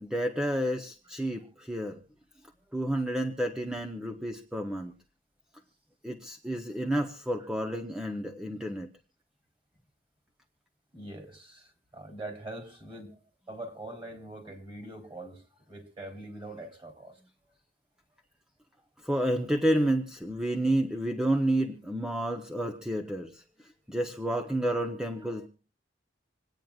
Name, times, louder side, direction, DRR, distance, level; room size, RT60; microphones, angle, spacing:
voice 1, 0.0-2.0 2.7-4.9 6.0-8.9 19.0-25.5, right 1 dB, 5° right, 0.8 m, -30 dB
voice 2, 10.9-13.1 13.5-15.4 15.7-17.1, right 1 dB, 25° right, 3.6 m, -43 dB
27.0 x 9.1 x 2.4 m
head